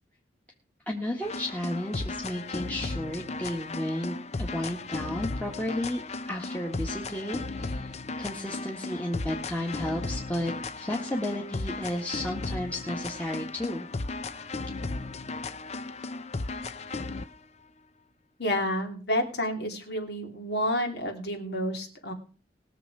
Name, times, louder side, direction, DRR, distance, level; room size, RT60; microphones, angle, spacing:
voice 1, 0.9-13.9, left 1 dB, 10° left, -2 dB, 1.6 m, -33 dB
sound 1, 1.2-17.3, left 3 dB, 35° left, 0.6 m, -35 dB
voice 2, 18.4-22.1, equal, 65° left, 4 dB, 2.9 m, -30 dB
20.5 x 7.1 x 4.8 m, 0.37 s
head